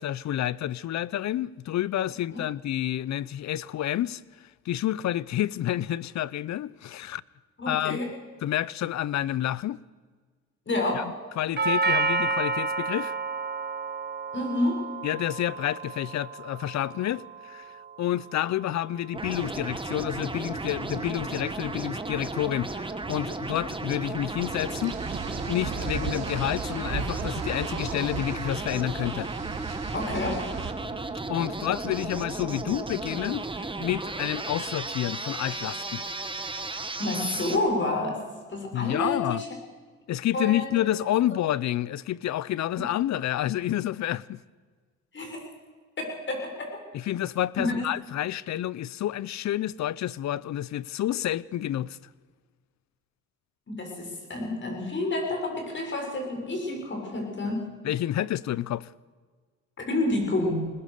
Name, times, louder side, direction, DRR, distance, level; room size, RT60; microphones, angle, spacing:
voice 1, 0.0-4.2 4.7-7.2 7.7-8.0 8.4-9.8 10.9-11.0 11.4-13.1 15.0-24.9 25.5-29.3 31.3-33.4 33.8-36.0 38.7-39.4 40.1-44.4 46.9-52.0 57.8-58.9, left 12 dB, 65° left, 0.7 m, -29 dB
voice 2, 7.6-8.1 10.7-11.1 14.3-14.9 29.9-30.5 37.0-38.2 38.5-39.5 40.3-40.7 45.1-45.5 46.0-46.8 47.6-47.9 53.7-57.7 59.8-60.7, left 2 dB, 40° left, 7.0 m, -29 dB
Doorbell, 11.6-19.6, right 3 dB, 35° right, 1.6 m, -31 dB
sound 1, 19.1-37.6, right 3 dB, 15° right, 1.8 m, -34 dB
sound 2, 24.4-30.7, right 6 dB, 60° right, 2.8 m, -36 dB
21.0 x 20.0 x 6.8 m
cardioid pair, 90°, 30 cm